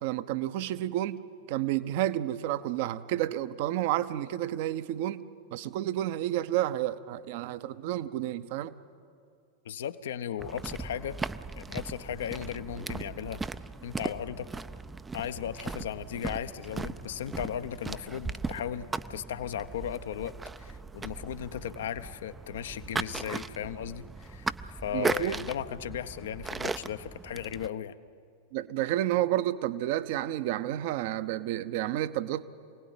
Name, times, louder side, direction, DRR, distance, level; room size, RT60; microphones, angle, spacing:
voice 1, 0.0-5.2 5.5-8.8 24.9-25.3 28.5-32.4, right 13 dB, 50° right, 14 dB, 0.8 m, -30 dB
voice 2, 9.6-11.2 11.6-13.4 13.8-14.5 15.1-24.5 24.8-27.9, left 9 dB, 60° left, 13 dB, 0.8 m, -36 dB
sound 1, 10.4-27.7, right 4 dB, 10° right, 0.5 m, -38 dB
26.0 x 17.5 x 9.4 m, 2.4 s
figure-of-eight pair, 90°, 0 cm